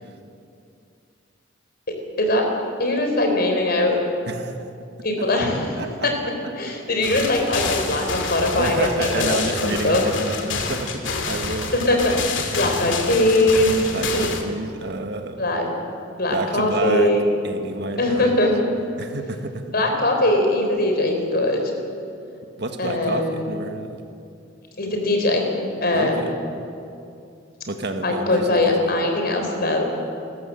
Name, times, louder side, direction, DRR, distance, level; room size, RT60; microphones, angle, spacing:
voice 1, 2.8-4.0 5.0-10.0 11.7-14.3 15.4-15.6 16.2-17.2 18.0-18.5 19.7-21.6 22.8-23.4 24.8-25.5 25.8-26.3 28.0-29.8, left 1 dB, 55° left, 3 dB, 4.3 m, -21 dB
voice 2, 4.3-4.7 5.8-6.1 6.6-6.7 7.5-8.0 8.2-11.7 12.5-12.8 13.9-15.4 16.3-17.1 17.4-18.5 19.0-19.8 22.6-24.0 25.9-26.4 27.7-29.0, right 2 dB, 60° right, 6 dB, 1.6 m, -30 dB
sound 1, 7.0-14.4, left 4 dB, 75° left, 2.5 m, -28 dB
29.5 x 14.0 x 7.7 m, 2.5 s
head